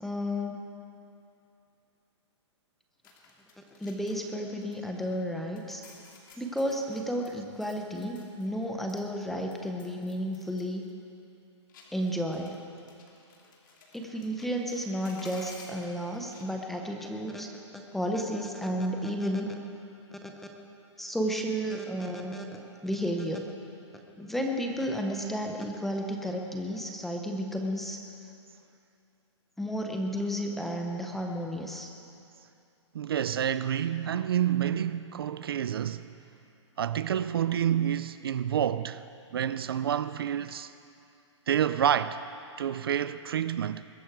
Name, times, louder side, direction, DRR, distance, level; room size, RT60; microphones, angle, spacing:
voice 1, 0.0-0.6 3.8-5.8 6.4-10.8 11.9-12.6 13.9-17.5 17.9-19.6 20.1-20.2 21.0-22.5 22.8-23.5 24.2-28.0 29.6-31.9, equal, ahead, 0.5 m, -32 dB
sound 1, 3.0-4.3 4.6-5.3 5.6-8.6 8.9-10.6 10.9-11.0 11.7-16.5, left 4 dB, 45° left, 2.3 m, -54 dB
voice 2, 32.9-36.1 36.8-39.0 39.3-40.7 41.5-42.2 42.6-43.8, right 9 dB, 55° right, 0.4 m, -28 dB
21.5 x 12.5 x 4.6 m
hypercardioid pair, 175°, 15 cm